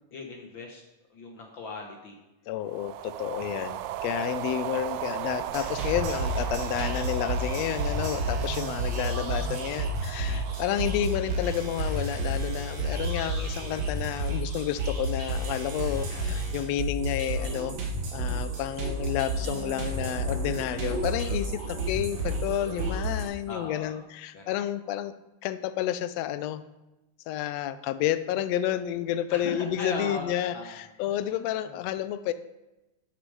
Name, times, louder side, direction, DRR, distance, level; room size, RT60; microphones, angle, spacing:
voice 1, 0.1-0.8 1.1-2.2 8.9-9.4 13.8-13.9 16.1-16.3 23.4-24.0 24.3-24.6 29.3-31.7, left 3 dB, 60° left, 2 dB, 1.3 m, -39 dB
voice 2, 2.5-17.8 18.1-25.1 25.4-26.6 27.3-32.3, left 11 dB, 75° left, 12 dB, 1.6 m, -30 dB
sound 1, 2.7-12.1, right 12 dB, 80° right, 1.9 m, -36 dB
sound 2, 5.5-23.2, right 1 dB, 65° right, 2.8 m, -31 dB
sound 3, 9.4-23.5, left 1 dB, 5° right, 3.0 m, -53 dB
11.0 x 6.7 x 5.4 m, 1.0 s
omnidirectional pair, 3.3 m